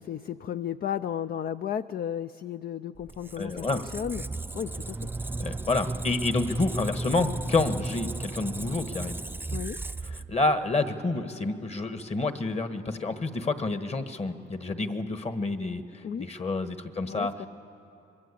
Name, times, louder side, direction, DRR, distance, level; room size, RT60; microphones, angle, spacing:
voice 1, 0.0-4.2 4.5-5.1 9.5-9.8 16.0-16.3 17.1-17.5, left 9 dB, 50° left, 12 dB, 0.5 m, -34 dB
Squeak, 3.0-10.7, right 2 dB, 10° right, 0.5 m, -35 dB
voice 2, 3.4-3.8 5.4-9.2 10.1-17.3, left 3 dB, 30° left, 9 dB, 1.6 m, -29 dB
24.5 x 22.5 x 8.5 m, 3.0 s
cardioid pair, 90°, 20 cm